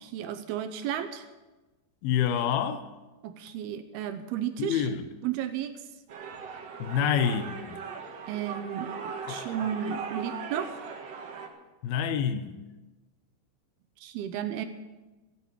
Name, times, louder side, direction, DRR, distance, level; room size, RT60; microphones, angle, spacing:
voice 1, 0.0-1.3 3.2-4.8 5.2-5.7 8.3-10.8 14.0-14.7, right 10 dB, 80° right, 2.5 m, -33 dB
voice 2, 2.0-2.8 4.6-5.1 6.8-7.8 9.3-9.6 11.8-12.5, left 8 dB, 80° left, 2.4 m, -27 dB
sound 1, 6.1-11.5, right 5 dB, 60° right, 1.8 m, -39 dB
16.0 x 8.3 x 8.4 m
omnidirectional pair, 4.9 m